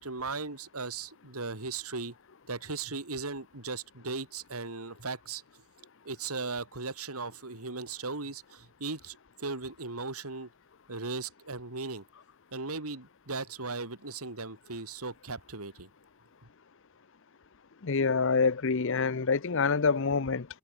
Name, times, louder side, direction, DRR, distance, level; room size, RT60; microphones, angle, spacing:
voice 1, 0.0-2.1 2.5-5.4 6.0-10.5 10.9-12.0 12.5-15.9, right 3 dB, 90° right, 3.3 m, -37 dB
voice 2, 17.8-20.5, left 4 dB, 60° left, 0.8 m, -26 dB
head